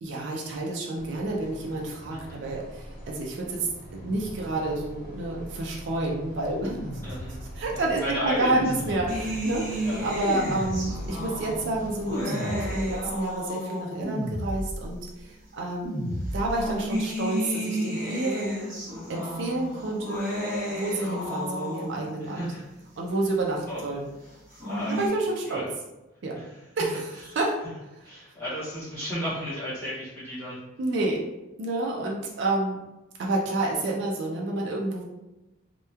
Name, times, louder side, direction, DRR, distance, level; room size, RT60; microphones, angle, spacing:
voice 1, 0.0-6.8 7.6-18.7 19.1-20.4 20.7-22.4 23.0-24.1 24.9-25.6 26.2-26.3 26.8-27.5 30.8-31.2 31.6-32.8 33.2-35.0, right 2 dB, 60° right, -2 dB, 0.4 m, -29 dB
sound 1, 1.0-12.3, equal, 40° left, 0.8 m, -43 dB
voice 2, 2.1-2.4 7.0-7.4 7.7-9.3 9.8-10.0 22.2-22.6 23.6-23.8 24.6-25.0 25.4-25.6 26.3-26.6 28.0-30.6 32.0-32.1, equal, 15° left, -11 dB, 1.0 m, -34 dB
sound 2, 6.4-7.6 8.3-9.5 10.2-11.3 12.1-13.1 14.0-15.0 15.8-16.7, equal, 85° left, 1.0 m, -33 dB
sound 3, 9.1-14.2 15.1-15.2 16.3-22.2 24.3-25.1, equal, 40° right, 1.0 m, -32 dB
2.9 x 2.1 x 2.3 m, 1.0 s
head